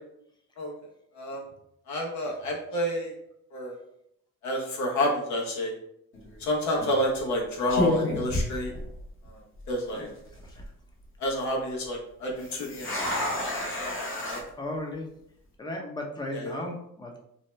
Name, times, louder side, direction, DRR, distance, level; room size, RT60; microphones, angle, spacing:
voice 1, 1.9-3.1 3.5-3.8 4.4-5.8 6.4-8.7 9.3-10.1 11.2-13.2 13.6-14.4 16.3-16.6, equal, 70° left, -1 dB, 0.9 m, -30 dB
sound 1, 6.1-6.4 7.2-7.4 7.7-9.3 9.6-9.7 10.3-10.7 12.4-14.4, left 1 dB, 40° left, 0.9 m, -30 dB
voice 2, 14.3-15.1 15.6-17.2, left 1 dB, 15° left, 1 dB, 0.6 m, -36 dB
2.7 x 2.0 x 3.2 m, 0.76 s
cardioid pair, 90°, 30 cm